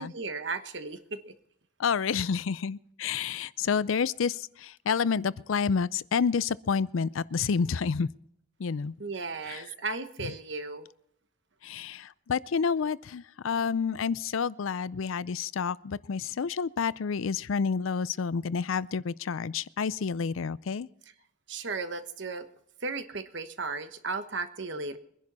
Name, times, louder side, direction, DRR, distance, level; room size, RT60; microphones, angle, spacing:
voice 1, 0.0-1.3 9.0-10.9 21.5-22.5 22.8-25.0, right 3 dB, 60° right, 1.1 m, -35 dB
voice 2, 1.8-8.1 8.6-8.9 9.5-9.6 11.6-20.9, left 6 dB, 75° left, 0.4 m, -29 dB
23.0 x 10.5 x 4.2 m
head